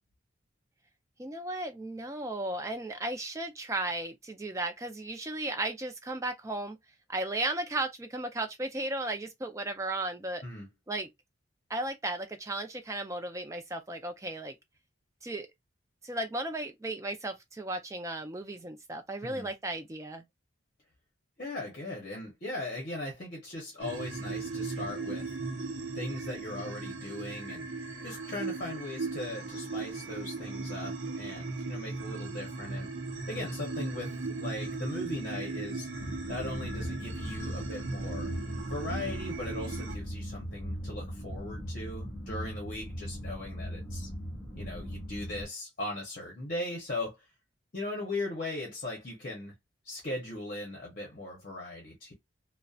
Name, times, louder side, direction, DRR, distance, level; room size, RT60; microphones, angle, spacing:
voice 1, 1.2-6.8 7.1-10.4 10.9-11.1 11.7-14.6 15.2-15.5 16.0-20.2, right 2 dB, 15° right, 0.4 m, -35 dB
voice 2, 21.4-25.3 25.9-27.7 28.0-32.9 33.3-35.9 36.3-38.3 38.7-44.1 44.5-47.2 47.7-49.5 49.8-52.1, left 2 dB, 45° left, 0.7 m, -39 dB
sound 1, 23.8-40.0, right 3 dB, 80° right, 0.7 m, -37 dB
sound 2, 36.0-45.4, equal, 5° left, 0.9 m, -39 dB
2.6 x 2.1 x 2.3 m
head